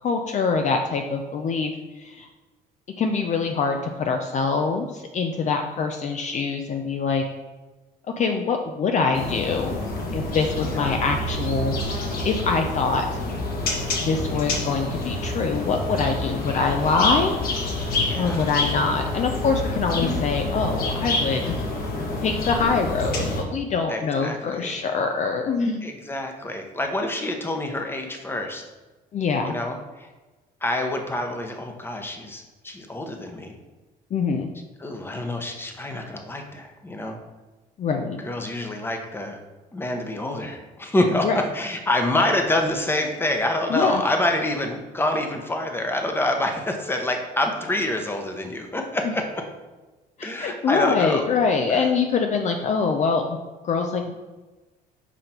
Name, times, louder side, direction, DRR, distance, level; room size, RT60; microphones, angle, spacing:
voice 1, 0.0-2.3 3.0-7.2 8.1-9.8 10.1-13.2 14.0-17.4 18.2-21.6 22.2-25.8 29.1-29.5 34.1-34.5 37.8-38.2 41.2-41.4 43.7-44.0 49.0-49.1 50.2-53.4 53.6-54.1, left 4 dB, 45° left, 4 dB, 0.6 m, -24 dB
sound 1, 9.1-23.4, left 2 dB, 60° left, 1.6 m, -27 dB
voice 2, 10.6-11.0 18.0-18.4 23.9-24.8 25.8-28.6 29.4-30.1 30.6-33.5 34.8-37.2 38.2-39.4 39.7-49.2 50.2-51.3 51.7-51.9, left 1 dB, 15° left, 4 dB, 1.0 m, -27 dB
6.1 x 5.1 x 4.4 m, 1.2 s
cardioid pair, 110°, 17 cm